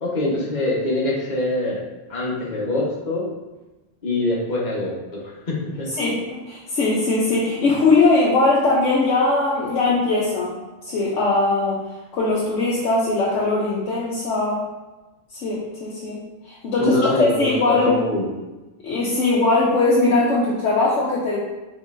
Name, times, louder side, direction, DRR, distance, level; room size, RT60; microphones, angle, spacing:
voice 1, 0.0-1.8 2.1-3.2 4.0-5.9 16.8-18.3, left 2 dB, 40° left, -5 dB, 1.1 m, -24 dB
voice 2, 5.9-10.5 10.8-11.8 12.1-14.6 15.3-18.0 18.8-21.4, left 3 dB, 75° left, -6 dB, 1.0 m, -20 dB
5.4 x 3.1 x 2.5 m, 1.1 s
omnidirectional pair, 1.3 m